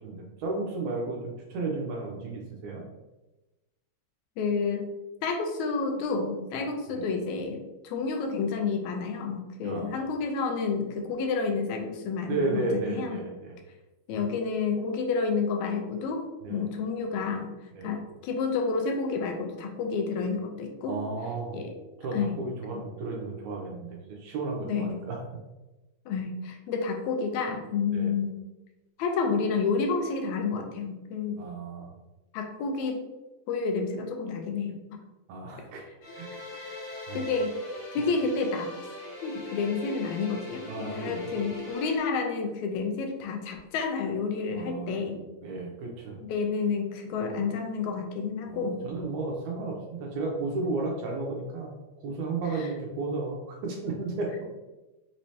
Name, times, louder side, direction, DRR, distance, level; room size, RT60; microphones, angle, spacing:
voice 1, 0.0-2.8 6.9-7.0 9.6-9.9 12.3-13.6 16.4-16.7 17.7-17.9 20.9-21.6 22.0-25.2 27.9-28.1 31.4-31.9 35.3-35.8 36.2-37.2 40.7-41.3 44.5-45.0 45.4-46.2 48.5-51.8 52.0-54.4, right 3 dB, 85° right, -1 dB, 2.1 m, -33 dB
voice 2, 4.4-4.8 5.2-13.2 14.1-17.5 17.8-21.0 21.5-21.8 22.1-22.3 22.7-22.8 24.6-25.0 26.1-28.4 29.0-31.4 32.3-33.0 33.5-35.0 37.1-37.5 37.9-38.7 39.2-45.2 46.2-48.8 52.5-52.7, left 4 dB, 80° left, 4 dB, 1.9 m, -30 dB
sound 1, 36.0-42.0, left 3 dB, 55° left, 1.8 m, -40 dB
5.3 x 3.2 x 2.7 m, 1.1 s
omnidirectional pair, 3.4 m